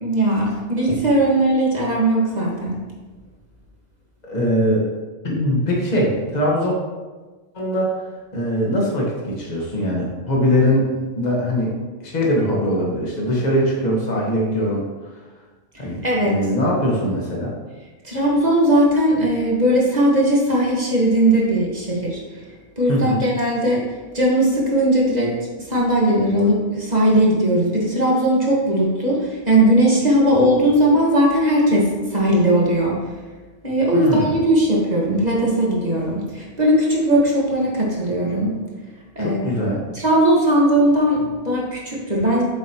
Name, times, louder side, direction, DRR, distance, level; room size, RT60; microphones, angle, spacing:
voice 1, 0.0-2.8 16.0-16.3 18.0-22.2 22.8-32.9 33.6-38.5 39.2-39.5 39.9-42.4, right 1 dB, 35° right, -4 dB, 1.8 m, -18 dB
voice 2, 4.2-4.8 5.2-6.7 7.5-7.9 8.3-11.7 12.0-14.8 15.8-17.5 22.9-23.2 33.9-34.4 39.2-40.0, equal, 35° left, -3 dB, 1.7 m, -21 dB
8.9 x 7.2 x 3.0 m, 1.3 s
omnidirectional pair, 1.3 m